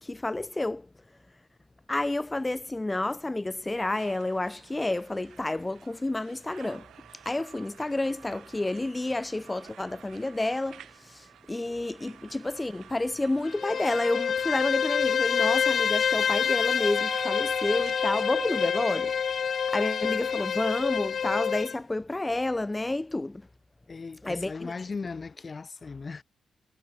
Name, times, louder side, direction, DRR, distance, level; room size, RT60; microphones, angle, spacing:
voice 1, 0.0-0.9 1.9-6.9 7.3-23.4 24.2-24.7, left 2 dB, 20° left, 0.6 m, -30 dB
sound 1, 3.8-18.5, right 10 dB, 75° right, 7.5 m, -52 dB
Bowed string instrument, 13.4-21.8, left 7 dB, 60° left, 0.4 m, -27 dB
Wind instrument woodwind instrument, 16.7-20.7, right 3 dB, 35° right, 2.0 m, -42 dB
voice 2, 23.9-26.2, left 4 dB, 40° left, 2.2 m, -37 dB
supercardioid pair, 65°, 0 cm